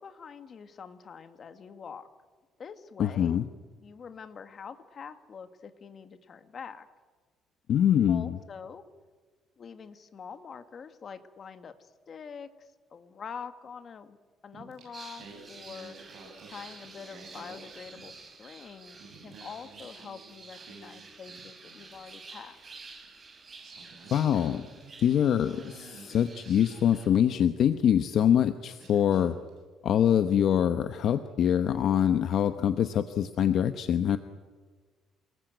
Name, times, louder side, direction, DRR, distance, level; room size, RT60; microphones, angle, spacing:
voice 1, 0.0-2.1 2.6-3.4 3.8-6.9 8.1-8.8 9.6-14.2 14.4-16.0 16.5-22.6, left 6 dB, 35° left, 9 dB, 1.7 m, -45 dB
voice 2, 3.0-3.5 7.7-8.3 24.1-24.7 25.0-29.4 29.8-34.2, left 9 dB, 50° left, 9 dB, 0.9 m, -24 dB
Singing, 14.5-18.5 18.8-22.0 23.0-23.1 23.6-27.8 28.4-28.5 28.8-29.6, right 3 dB, 55° right, 7.9 m, -52 dB
sound 1, 14.9-27.1, right 4 dB, 25° right, 5.3 m, -49 dB
28.5 x 20.0 x 9.2 m, 1.4 s
cardioid pair, 160°, 0 cm